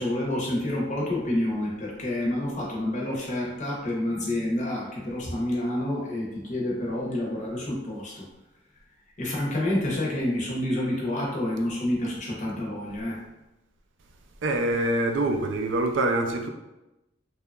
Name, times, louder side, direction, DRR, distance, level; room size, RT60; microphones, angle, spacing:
voice 1, 0.0-8.2 9.2-13.2, left 1 dB, 40° left, -3 dB, 0.7 m, -28 dB
voice 2, 14.4-16.5, right 2 dB, 75° right, 4 dB, 0.4 m, -25 dB
2.8 x 2.3 x 2.3 m, 0.97 s
head